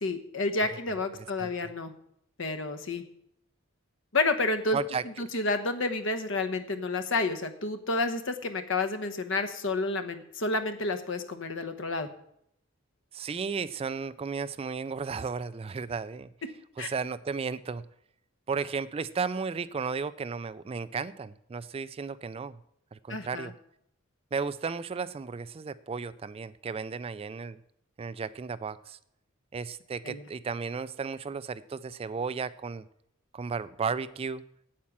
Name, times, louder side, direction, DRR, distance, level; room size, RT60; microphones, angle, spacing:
voice 1, 0.0-1.9 2.4-3.0 4.1-4.8 5.2-12.1 16.8-16.9 23.1-23.5 30.0-30.2, left 3 dB, 65° left, 9 dB, 1.1 m, -30 dB
voice 2, 4.7-5.0 13.1-16.3 16.8-17.8 18.5-22.6 22.9-23.5 24.3-27.6 28.0-29.0 29.5-32.9 33.3-34.4, right 5 dB, 30° right, 16 dB, 0.3 m, -34 dB
8.7 x 8.4 x 7.2 m, 0.73 s
head